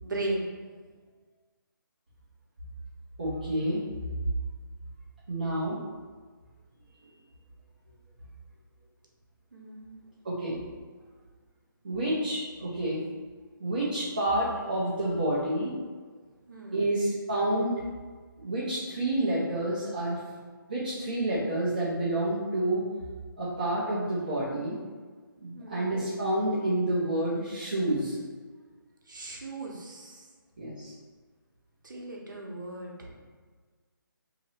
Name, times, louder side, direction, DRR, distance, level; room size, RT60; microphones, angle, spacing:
voice 1, 0.0-0.5 9.5-9.9 16.5-16.9 25.5-25.9 29.1-30.2 31.8-33.2, right 2 dB, 60° right, -1 dB, 0.9 m, -37 dB
voice 2, 3.2-3.8 5.3-5.8 10.2-10.6 11.8-13.0 13.6-15.7 16.7-17.8 18.4-20.2 20.7-22.8 23.4-24.8 25.4-28.1 30.6-30.9, right 1 dB, 25° right, -10 dB, 0.6 m, -29 dB
2.9 x 2.9 x 4.2 m, 1.5 s
hypercardioid pair, 180°, 12 cm